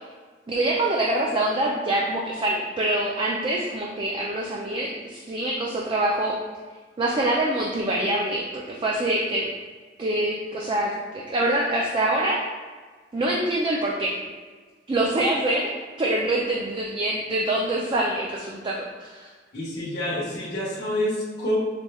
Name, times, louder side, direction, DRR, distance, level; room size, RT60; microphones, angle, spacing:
voice 1, 0.5-6.4 7.0-9.5 10.0-12.4 13.1-14.2 14.9-15.7 16.0-19.3, right 1 dB, 25° right, -3 dB, 0.4 m, -25 dB
voice 2, 19.5-21.6, left 1 dB, 60° left, -6 dB, 1.1 m, -27 dB
5.0 x 3.0 x 2.3 m, 1.5 s
head